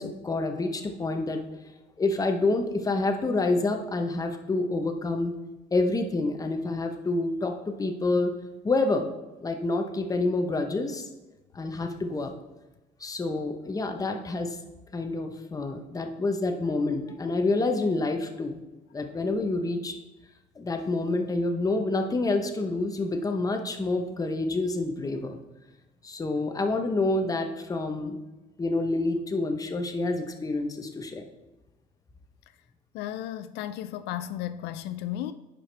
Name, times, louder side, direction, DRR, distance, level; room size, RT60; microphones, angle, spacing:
voice 1, 0.0-1.4 2.0-5.3 5.7-8.3 8.6-9.1 9.4-11.1 11.5-12.3 13.0-14.6 14.9-18.6 18.9-19.9 20.6-25.4 26.0-28.2 28.6-31.2, left 2 dB, 20° left, 0.9 m, -28 dB
voice 2, 32.9-35.3, left 12 dB, 85° left, 0.4 m, -34 dB
10.0 x 4.8 x 3.4 m
cardioid pair, 110°, 17 cm